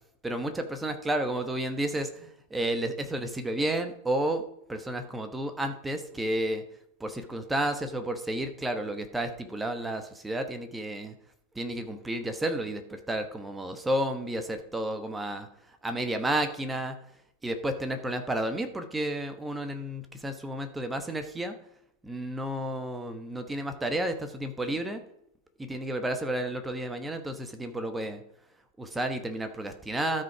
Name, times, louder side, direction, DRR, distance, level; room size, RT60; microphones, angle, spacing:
voice 1, 0.2-6.6 7.0-11.1 11.5-15.5 15.8-17.0 17.4-21.6 22.0-25.0 25.6-28.2 28.8-30.2, right 1 dB, 10° right, 7 dB, 1.2 m, -31 dB
13.0 x 5.2 x 5.0 m, 0.73 s
figure-of-eight pair, 90°, 0 cm